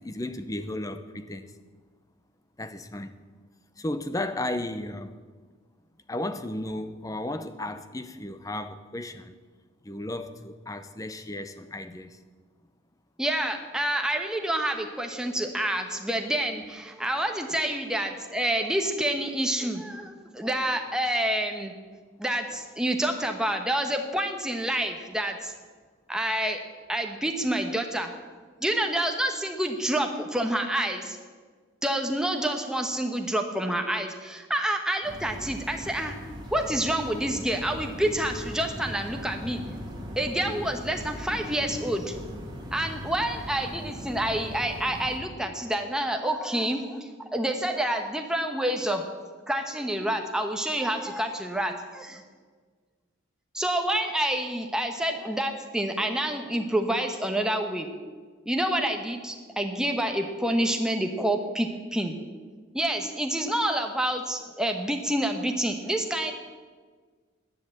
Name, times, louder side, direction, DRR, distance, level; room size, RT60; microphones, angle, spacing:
voice 1, 0.0-1.5 2.6-3.1 3.8-5.1 6.1-9.4 9.8-12.2, left 1 dB, 15° left, 11 dB, 0.6 m, -34 dB
voice 2, 13.2-21.7 22.2-25.5 26.1-26.6 26.9-28.1 28.6-31.2 31.8-36.2 36.5-39.6 40.2-42.2 42.7-49.0 49.5-52.2 53.5-57.9 58.4-62.2 62.7-66.3, right 1 dB, 5° right, 3 dB, 1.1 m, -28 dB
sound 1, 35.0-45.2, equal, 20° right, 2.2 m, -39 dB
11.0 x 10.0 x 7.8 m, 1.5 s
head